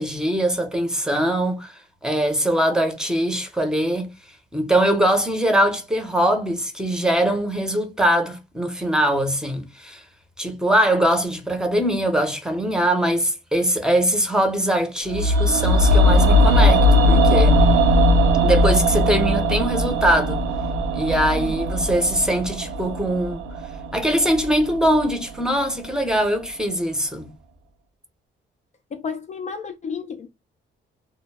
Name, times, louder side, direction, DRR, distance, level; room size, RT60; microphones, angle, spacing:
voice 1, 0.0-1.7 2.0-4.1 4.5-10.0 10.4-17.7 18.4-20.4 20.9-23.4 23.9-27.3, right 1 dB, 5° right, 0.7 m, -22 dB
sound 1, 15.1-25.2 25.5-25.6, left 1 dB, 85° right, 0.5 m, -19 dB
voice 2, 28.9-30.3, left 6 dB, 35° left, 0.4 m, -32 dB
2.2 x 2.0 x 3.2 m
cardioid pair, 90°, 20 cm